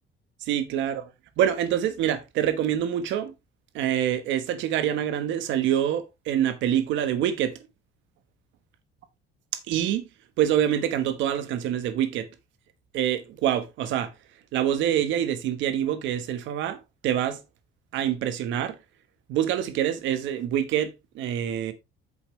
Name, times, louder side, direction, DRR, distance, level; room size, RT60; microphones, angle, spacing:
voice 1, 0.4-1.1 1.4-3.3 3.7-7.6 9.7-10.0 10.4-12.3 12.9-14.1 14.5-17.4 17.9-18.8 19.3-21.7, right 10 dB, 65° right, 1.3 m, -26 dB
8.5 x 7.0 x 3.2 m
cardioid pair, 180°, 21 cm